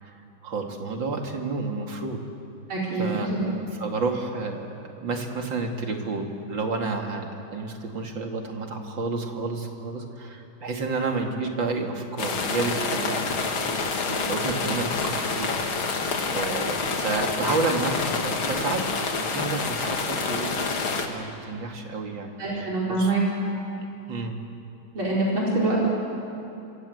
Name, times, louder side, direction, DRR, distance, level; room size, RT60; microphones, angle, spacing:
voice 1, 0.0-2.2 3.0-15.9 16.3-18.8 19.1-20.6 21.1-22.7 23.0-23.1 24.1-24.4, right 3 dB, 65° right, 3 dB, 3.0 m, -30 dB
voice 2, 2.7-3.4 22.4-23.2 24.9-25.9, right 2 dB, 85° right, -5 dB, 5.4 m, -25 dB
sound 1, 12.2-21.1, left 4 dB, 90° left, 2.8 m, -27 dB
27.0 x 25.5 x 7.9 m, 2.7 s
omnidirectional pair, 2.2 m